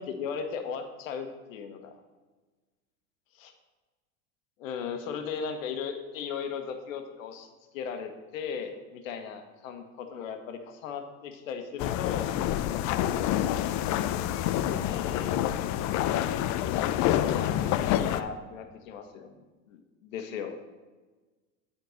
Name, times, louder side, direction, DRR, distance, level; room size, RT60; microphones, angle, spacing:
voice 1, 0.0-1.9 3.3-3.5 4.6-7.5 7.7-12.3 14.8-15.4 17.2-20.6, left 6 dB, 85° left, 6 dB, 1.4 m, -37 dB
sound 1, 11.8-18.2, left 11 dB, 45° left, 0.6 m, -27 dB
11.0 x 4.5 x 6.4 m, 1.3 s
supercardioid pair, 115°, 38 cm